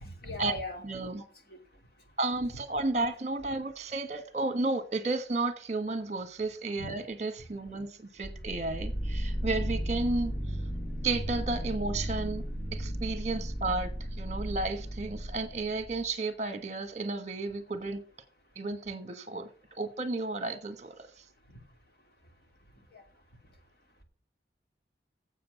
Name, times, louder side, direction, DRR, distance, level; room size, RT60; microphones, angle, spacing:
voice 1, 0.0-0.8 1.5-1.6 6.8-6.9 22.9-23.0, left 2 dB, 55° left, 2.7 m, -38 dB
voice 2, 0.8-1.2 2.2-10.3 11.0-12.4 12.7-13.9 14.2-18.0 18.5-21.1, right 3 dB, 40° right, 1.3 m, -32 dB
sound 1, 8.2-16.1, equal, 20° left, 1.0 m, -35 dB
7.7 x 7.6 x 8.2 m
head